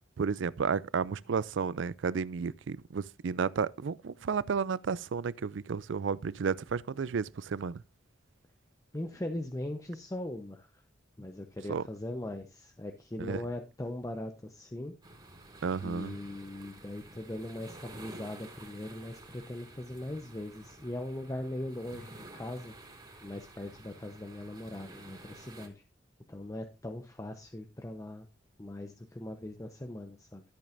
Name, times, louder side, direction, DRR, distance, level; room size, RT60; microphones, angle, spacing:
voice 1, 0.2-7.8 11.7-11.8 13.2-13.4 15.6-16.2, right 5 dB, 75° right, 0.4 m, -32 dB
voice 2, 8.9-10.7 11.2-14.9 15.8-22.7 23.2-25.8 26.3-28.3 28.6-30.4, left 1 dB, 20° left, 0.8 m, -40 dB
sound 1, 15.0-25.7, right 2 dB, 25° right, 3.1 m, -51 dB
14.0 x 8.6 x 2.6 m
head